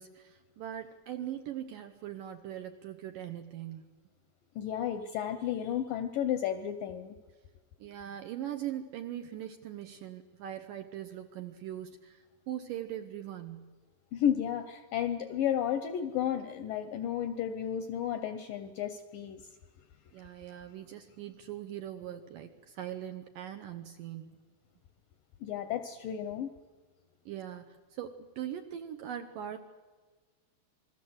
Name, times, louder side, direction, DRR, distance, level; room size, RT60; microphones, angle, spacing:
voice 1, 0.0-3.9 7.8-13.7 20.1-24.4 27.3-29.6, right 11 dB, 75° right, 7 dB, 2.1 m, -41 dB
voice 2, 4.6-7.2 14.1-19.4 25.4-26.5, left 9 dB, 75° left, 9 dB, 2.1 m, -32 dB
28.0 x 21.0 x 7.9 m, 1.4 s
omnidirectional pair, 4.8 m